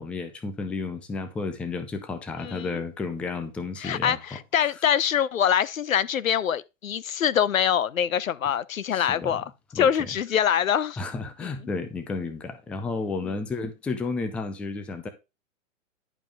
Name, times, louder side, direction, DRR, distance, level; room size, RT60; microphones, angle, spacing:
voice 1, 0.0-4.4 8.9-9.4 9.7-10.1 11.0-15.1, left 3 dB, 5° left, 0.4 m, -32 dB
voice 2, 2.4-2.8 3.8-9.4 9.7-11.0 11.4-11.5, left 9 dB, 90° left, 0.9 m, -24 dB
11.0 x 5.1 x 3.5 m
hypercardioid pair, 140°, 39 cm